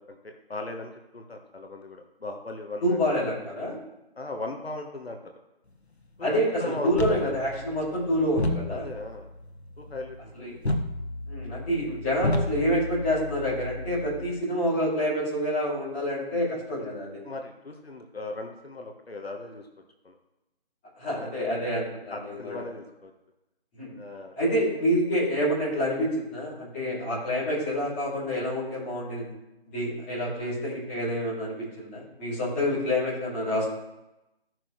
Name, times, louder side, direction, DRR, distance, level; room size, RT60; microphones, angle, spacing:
voice 1, 0.0-3.0 4.2-5.2 6.2-7.3 8.7-9.3 9.8-10.5 17.2-19.6 20.0-20.2 21.2-21.5 22.1-23.1 24.0-24.4, left 2 dB, 70° left, 4 dB, 1.3 m, -38 dB
voice 2, 2.8-3.8 6.2-8.9 10.3-10.6 11.3-17.2 21.0-22.6 23.8-23.9 24.3-29.3 29.7-33.6, equal, 10° left, -10 dB, 2.7 m, -27 dB
sound 1, 6.9-14.3, left 1 dB, 90° left, 1.5 m, -33 dB
14.5 x 6.2 x 3.2 m, 0.95 s
figure-of-eight pair, 160°, 32 cm